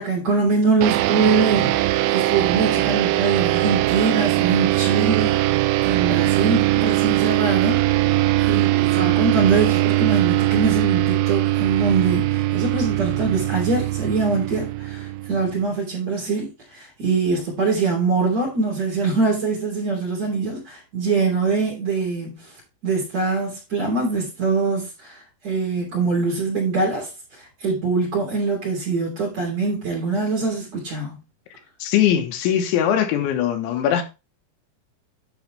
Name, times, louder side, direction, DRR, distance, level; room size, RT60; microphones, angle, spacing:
voice 1, 0.0-5.4 5.8-22.5 22.8-27.1 27.4-31.2, right 4 dB, 40° right, 3.6 m, -23 dB
sound 1, 0.8-15.6, right 17 dB, 90° right, 3.2 m, -21 dB
voice 2, 31.8-34.0, left 10 dB, 75° left, 3.5 m, -20 dB
10.5 x 6.4 x 3.2 m
omnidirectional pair, 5.6 m